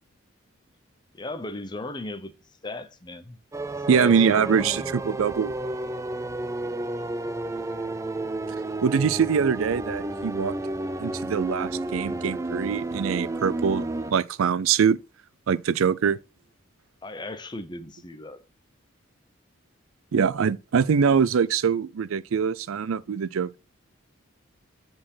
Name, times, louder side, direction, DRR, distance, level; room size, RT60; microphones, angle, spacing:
voice 1, 1.1-2.3 2.6-3.4 3.9-5.3 6.6-6.8 17.0-18.4, left 2 dB, 20° left, 0.8 m, -37 dB
sound 1, 3.5-14.1, right 2 dB, 15° right, 0.3 m, -31 dB
voice 2, 3.9-5.5 8.8-10.5 11.0-15.0 15.5-16.2 20.1-23.6, right 6 dB, 75° right, 0.4 m, -23 dB
7.6 x 4.4 x 5.5 m
head